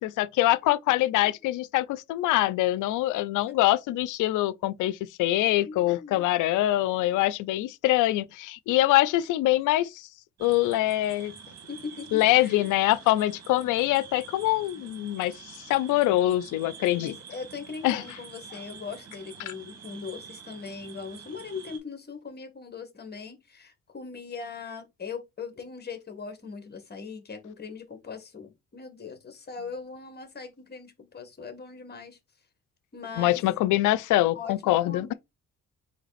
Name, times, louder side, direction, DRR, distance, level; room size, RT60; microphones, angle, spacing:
voice 1, 0.0-10.1 10.4-11.3 12.1-15.3 15.7-17.2 17.8-18.0 19.5-19.6 33.2-35.1, left 15 dB, 85° left, 0.5 m, -24 dB
voice 2, 5.6-6.3 7.0-7.2 11.7-12.7 16.9-32.2 32.9-33.4 34.3-35.1, left 5 dB, 35° left, 1.5 m, -40 dB
sound 1, 10.4-21.8, right 6 dB, 60° right, 1.6 m, -47 dB
4.0 x 3.2 x 4.0 m
cardioid pair, 90°, 30 cm